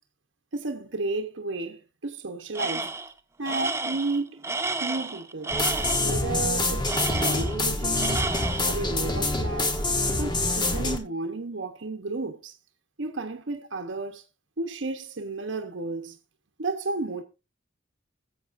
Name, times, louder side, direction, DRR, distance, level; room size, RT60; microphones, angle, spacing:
voice 1, 0.5-2.9 3.4-4.5 4.8-5.6 6.0-8.2 8.7-9.8 10.2-12.5 13.0-14.2 14.6-16.2 16.6-17.2, right 3 dB, 70° right, 1.0 m, -32 dB
Tools, 2.6-3.1 3.5-6.2 6.9-7.7 8.0-8.8, right 3 dB, 15° right, 0.6 m, -31 dB
sound 1, 5.5-11.0, left 2 dB, 25° left, 1.2 m, -26 dB
21.0 x 7.5 x 2.6 m
head